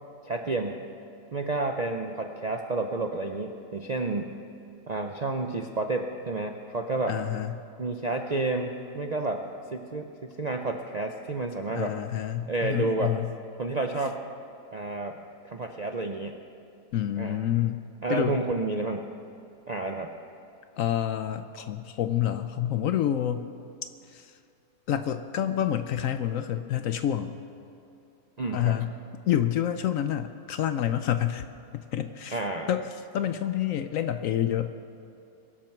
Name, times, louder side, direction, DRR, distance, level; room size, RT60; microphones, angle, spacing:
voice 1, 0.2-0.8 1.3-4.4 4.9-7.2 7.8-9.4 9.7-11.9 12.5-13.2 13.6-14.2 14.7-15.2 15.4-16.4 17.2-17.4 18.0-19.1 19.7-20.1 28.4-28.8 32.3-32.7, right 3 dB, 70° right, 4 dB, 0.3 m, -30 dB
voice 2, 7.1-7.6 11.7-13.3 16.9-17.8 18.1-18.4 20.8-23.5 24.1-24.3 24.9-27.4 28.5-28.9 29.3-31.5 31.7-32.4 32.7-32.9 33.1-34.8, left 11 dB, 70° left, 10 dB, 0.9 m, -28 dB
22.5 x 7.6 x 5.9 m, 2.7 s
omnidirectional pair, 1.7 m